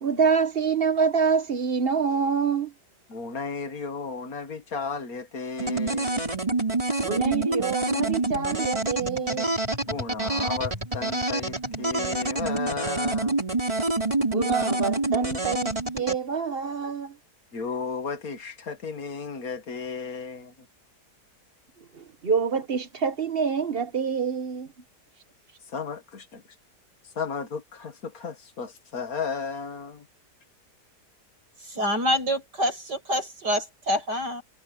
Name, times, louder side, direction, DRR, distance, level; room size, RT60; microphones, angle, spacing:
voice 1, 0.0-2.7 7.0-9.5 14.3-17.2 21.8-24.7, right 6 dB, 40° right, 1.3 m, -26 dB
voice 2, 3.1-6.2 9.9-13.4 17.5-20.5 25.7-26.4 27.2-30.1, left 5 dB, 60° left, 2.1 m, -34 dB
sound 1, 5.6-16.2, right 2 dB, 20° right, 4.6 m, -27 dB
voice 3, 31.6-34.4, equal, 85° right, 8.0 m, -26 dB
omnidirectional pair, 1.8 m